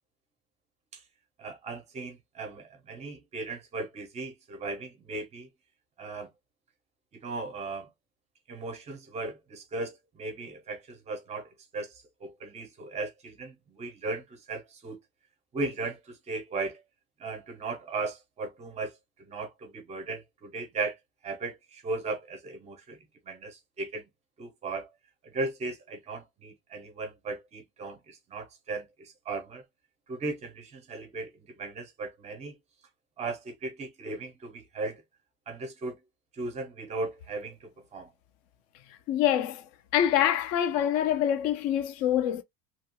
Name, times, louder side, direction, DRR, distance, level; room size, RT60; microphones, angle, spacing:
voice 1, 1.4-5.5 6.0-6.3 7.1-7.9 8.5-15.0 15.5-16.8 17.2-21.0 21.2-23.0 23.2-24.1 24.4-24.9 25.2-29.6 30.1-32.6 33.2-35.0 35.5-36.0 36.3-38.1, right 3 dB, 15° right, 0.6 m, -37 dB
voice 2, 39.1-39.6 39.9-42.4, left 10 dB, 40° left, 0.4 m, -25 dB
2.8 x 2.3 x 2.8 m
cardioid pair, 170°, 39 cm